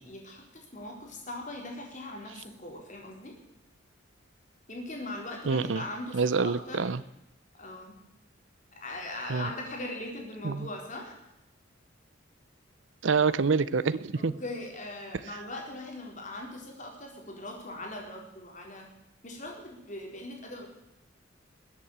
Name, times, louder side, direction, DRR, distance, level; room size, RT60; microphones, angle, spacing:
voice 1, 0.0-3.3 4.7-6.9 7.5-8.0 8.7-11.2 14.2-18.9 19.2-20.7, left 1 dB, 40° left, 1 dB, 4.1 m, -40 dB
voice 2, 5.5-5.8 6.1-7.0 9.3-9.5 10.4-10.7 13.0-14.4, right 5 dB, 75° right, 16 dB, 0.6 m, -26 dB
20.5 x 8.6 x 8.1 m, 0.86 s
head